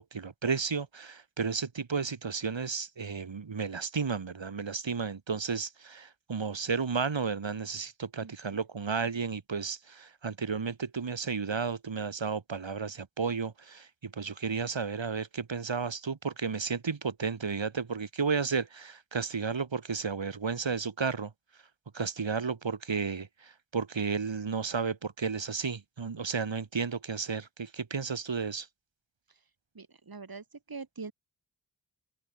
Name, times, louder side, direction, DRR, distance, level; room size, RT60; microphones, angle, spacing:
voice 1, 0.0-21.3 21.9-28.7, right 5 dB, 80° right, 3.4 m, -33 dB
voice 2, 29.7-31.1, right 4 dB, 50° right, 3.0 m, -43 dB
open air
wide cardioid pair, 60°, 45 cm